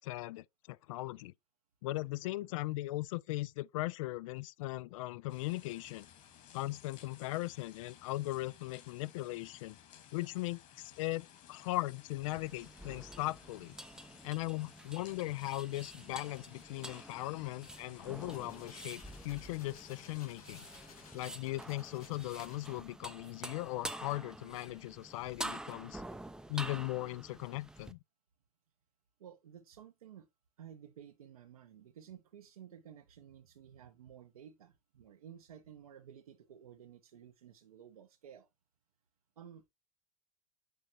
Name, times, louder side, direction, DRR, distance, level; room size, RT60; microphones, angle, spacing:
voice 1, 0.0-1.3 1.8-6.1 6.5-9.8 10.1-13.7 14.2-20.7 21.1-26.0 26.5-28.0, left 18 dB, 65° left, 0.4 m, -38 dB
sound 1, 5.3-21.2, left 9 dB, 45° left, 2.1 m, -58 dB
sound 2, 12.2-27.9, right 1 dB, 5° right, 0.5 m, -48 dB
sound 3, 18.0-23.0, left 5 dB, 85° left, 2.3 m, -59 dB
voice 2, 29.2-30.3 30.6-38.5 39.4-39.7, right 9 dB, 80° right, 0.8 m, -54 dB
6.5 x 6.2 x 2.8 m
hypercardioid pair, 90°, 18 cm